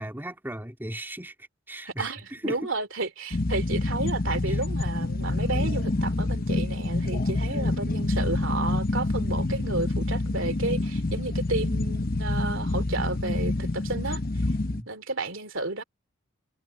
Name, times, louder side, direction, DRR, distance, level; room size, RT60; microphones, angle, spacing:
voice 1, 0.0-2.6 4.5-4.6 14.7-14.9, right 1 dB, 10° right, 2.6 m, -37 dB
voice 2, 2.0-14.2 14.9-15.8, right 3 dB, 65° right, 2.9 m, -32 dB
sound 1, 3.3-14.8, left 2 dB, 45° left, 0.8 m, -27 dB
open air
head